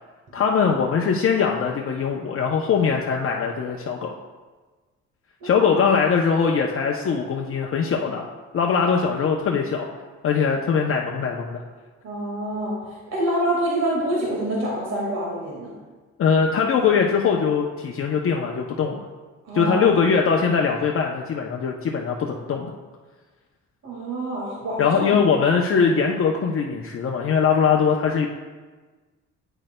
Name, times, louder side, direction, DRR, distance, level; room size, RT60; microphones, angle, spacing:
voice 1, 0.3-4.1 5.4-8.3 8.5-9.9 10.2-11.6 16.2-19.0 19.5-22.7 24.8-28.3, left 6 dB, 45° left, 0 dB, 0.6 m, -21 dB
voice 2, 12.0-15.7 19.4-19.9 23.8-25.0, right 1 dB, 60° right, -3 dB, 1.8 m, -26 dB
8.9 x 6.3 x 2.2 m, 1.3 s
cardioid pair, 90°, 30 cm